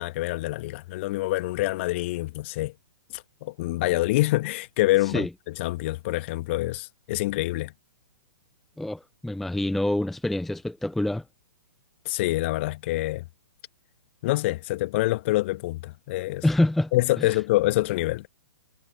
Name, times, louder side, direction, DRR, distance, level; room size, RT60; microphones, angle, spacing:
voice 1, 0.0-2.7 3.1-5.3 5.6-7.7 12.1-13.3 14.2-16.4 16.9-18.3, left 18 dB, 35° left, 1.8 m, -26 dB
voice 2, 8.8-11.2 16.4-16.9 17.2-17.4, left 1 dB, ahead, 0.4 m, -26 dB
figure-of-eight pair, 115°, 11 cm